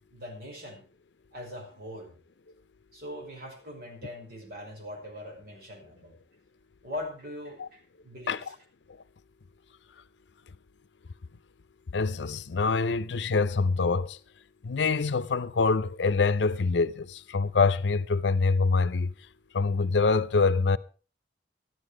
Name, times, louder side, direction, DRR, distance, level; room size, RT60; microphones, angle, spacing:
voice 1, 0.1-0.8 1.3-2.2 2.9-6.1 6.8-8.5, left 1 dB, 60° right, 5.7 m, -41 dB
voice 2, 11.9-14.2 14.6-19.1 19.5-20.8, left 4 dB, 80° left, 0.6 m, -25 dB
13.5 x 12.0 x 4.9 m
head